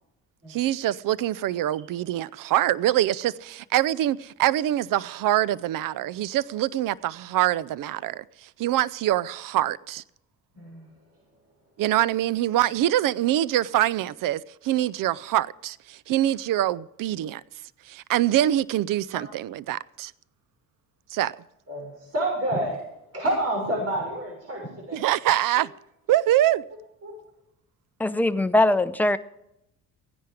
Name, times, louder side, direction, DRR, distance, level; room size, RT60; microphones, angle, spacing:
voice 1, 0.5-8.2 8.6-10.0 11.8-17.4 17.9-20.1 21.1-21.3 24.9-25.7 26.1-26.6, right 13 dB, 60° right, 0.7 m, -24 dB
voice 2, 10.5-10.9 21.7-22.8 23.1-25.0 27.0-27.2, right 1 dB, 40° right, 6.6 m, -28 dB
voice 3, 28.0-29.2, left 1 dB, 5° left, 0.8 m, -21 dB
15.5 x 10.0 x 5.0 m
supercardioid pair, 80°, 37 cm